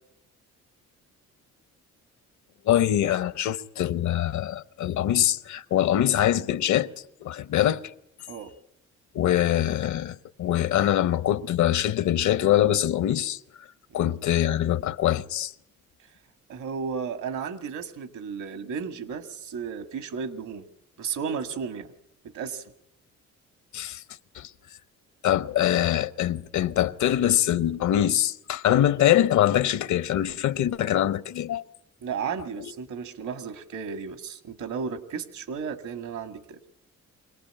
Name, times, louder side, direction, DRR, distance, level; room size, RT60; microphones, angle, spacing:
voice 1, 2.7-6.9 7.2-7.8 9.1-13.4 13.9-15.5 23.7-24.0 24.4-24.5 25.2-31.6, left 12 dB, 70° left, 0.9 m, -23 dB
voice 2, 16.5-20.7 21.0-21.9 22.2-22.6 32.0-36.6, right 6 dB, 75° right, 1.9 m, -34 dB
24.5 x 18.5 x 8.9 m
cardioid pair, 90°, 30 cm